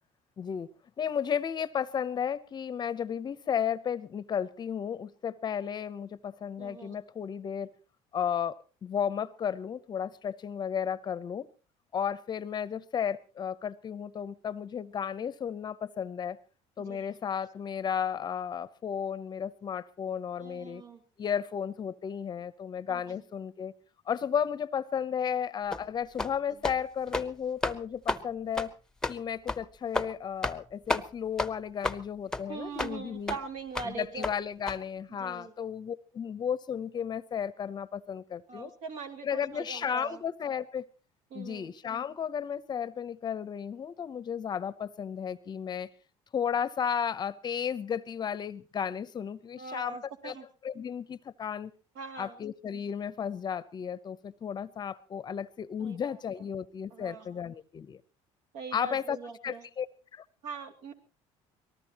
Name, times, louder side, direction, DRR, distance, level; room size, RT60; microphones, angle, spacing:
voice 1, 0.4-0.7 1.0-7.7 8.1-11.5 11.9-16.4 16.8-20.8 21.2-23.7 24.1-28.7 29.1-33.3 33.8-38.7 39.2-40.9 41.3-45.9 46.3-50.0 50.2-50.4 50.6-51.7 52.2-58.0 58.7-59.2 59.4-59.9 60.1-60.2, left 8 dB, 35° left, 17 dB, 0.7 m, -33 dB
voice 2, 6.6-7.0 16.8-17.2 20.4-21.0 22.9-23.2 32.5-34.3 35.1-35.5 38.5-40.2 41.3-41.7 49.6-50.5 51.9-52.3 55.8-56.0 56.9-57.4 58.5-59.6 60.4-60.9, right 4 dB, 70° right, 6 dB, 2.8 m, -42 dB
sound 1, 25.7-25.9 26.2-26.4 26.6-26.8 27.1-27.3 27.6-27.8 28.1-28.2 28.6-28.7 29.0-29.2 29.5-29.6 29.9-30.1 30.4-30.6 30.9-31.0 31.4-31.5 31.8-32.0 32.3-32.4 32.8-32.9 33.3-33.4 33.8-33.9 34.2-34.3 34.7-34.8, left 2 dB, 5° left, 0.9 m, -31 dB
25.0 x 19.0 x 3.0 m, 0.35 s
cardioid pair, 115°, 13 cm